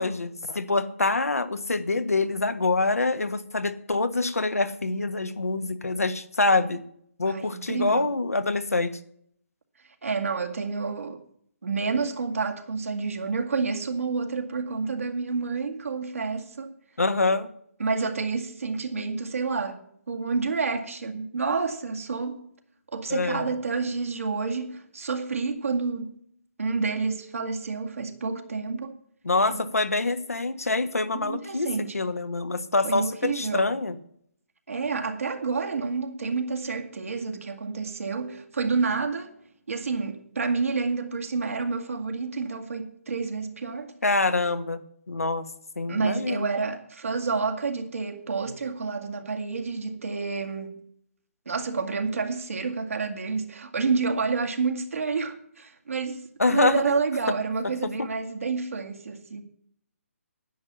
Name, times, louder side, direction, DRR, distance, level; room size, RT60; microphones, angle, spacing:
voice 1, 0.0-6.8 7.2-9.0 17.0-17.5 23.1-23.5 29.2-34.0 44.0-44.8 45.1-45.4 45.8-46.5 56.4-56.8 57.8-58.1, left 3 dB, 85° left, 1.3 m, -25 dB
voice 2, 7.3-8.1 10.0-11.3 11.6-16.7 17.8-22.5 22.9-26.1 26.6-29.0 29.5-29.6 31.1-32.1 32.8-33.7 34.7-39.3 39.7-43.9 45.9-50.8 51.5-59.4, right 4 dB, 70° right, 2.2 m, -29 dB
10.0 x 9.8 x 6.9 m
figure-of-eight pair, 145°, 8 cm